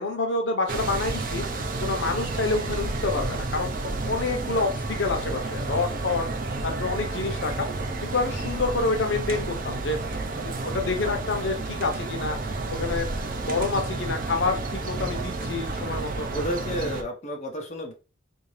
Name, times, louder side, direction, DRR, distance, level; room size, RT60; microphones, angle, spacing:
voice 1, 0.0-3.7 4.1-6.2 6.6-7.7 8.0-10.0 10.3-16.3, left 3 dB, 75° left, 4 dB, 0.7 m, -28 dB
sound 1, 0.7-17.0, right 2 dB, 45° right, 0.5 m, -31 dB
voice 2, 16.3-17.9, equal, 35° left, 0 dB, 0.7 m, -31 dB
3.7 x 2.7 x 3.1 m, 0.32 s
head